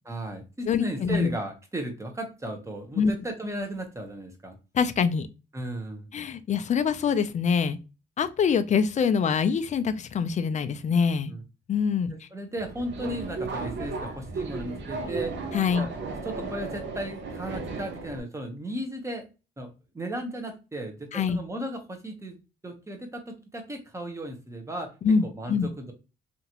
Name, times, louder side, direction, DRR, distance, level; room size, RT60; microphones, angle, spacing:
voice 1, 0.1-4.6 5.5-6.1 11.3-11.4 12.1-15.3 15.8-15.9 16.2-19.2 19.6-22.4 22.6-24.9 25.2-25.9, right 1 dB, 15° right, 0.8 m, -35 dB
voice 2, 0.7-1.3 3.0-3.1 4.7-5.3 6.1-7.8 8.2-11.3 11.7-12.3 15.5-15.9 21.1-21.4 25.0-25.7, left 6 dB, 35° left, 0.4 m, -24 dB
Subway metro underground, 12.6-18.2, right 3 dB, 65° right, 0.7 m, -35 dB
2.9 x 2.5 x 2.8 m
cardioid pair, 90°, 20 cm